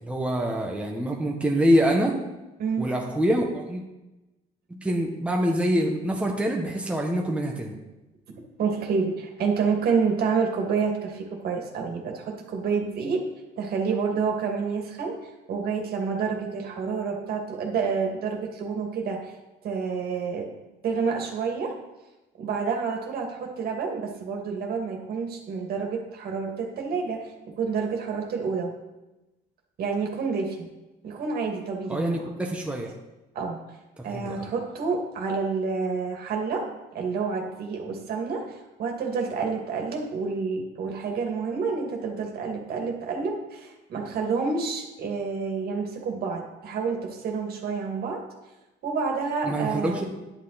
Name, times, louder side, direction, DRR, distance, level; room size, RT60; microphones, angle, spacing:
voice 1, 0.0-2.1 2.8-3.8 4.7-7.8 31.9-32.9 34.1-34.5 49.4-50.0, equal, 5° right, 0 dB, 1.4 m, -25 dB
voice 2, 1.9-2.3 2.6-2.9 8.6-13.2 13.6-15.1 15.5-19.2 19.6-20.5 20.8-21.7 22.4-27.2 27.6-28.7 29.8-30.6 31.0-32.3 33.3-33.6 34.0-36.6 36.9-38.4 38.8-48.2 48.8-50.0, right 5 dB, 65° right, 1 dB, 2.5 m, -28 dB
10.5 x 8.4 x 4.2 m, 1.0 s
cardioid pair, 110°, 17 cm